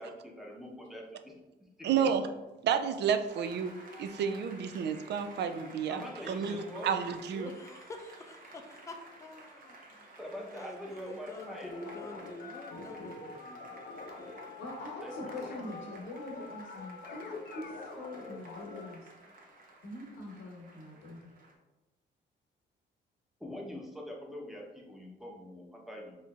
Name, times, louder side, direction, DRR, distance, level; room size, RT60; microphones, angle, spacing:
voice 1, 0.0-1.3 1.6-1.9 5.9-6.9 10.2-11.7 15.0-15.7 23.4-26.2, left 1 dB, ahead, -1 dB, 0.8 m, -44 dB
voice 2, 1.8-2.2 2.6-6.6 6.8-7.5, right 7 dB, 60° right, 8 dB, 0.4 m, -31 dB
Applause, 3.3-21.5, right 2 dB, 45° right, 0.9 m, -54 dB
voice 3, 7.3-10.1 10.4-14.1 15.2-15.3 15.8-15.9, left 2 dB, 15° left, 4 dB, 0.4 m, -47 dB
sound 1, 11.3-18.9, left 3 dB, 50° left, 0.7 m, -46 dB
voice 4, 14.6-19.0 19.8-21.2, left 2 dB, 75° left, 0 dB, 1.0 m, -43 dB
4.3 x 2.8 x 2.4 m, 1.1 s
cardioid pair, 90°, 20 cm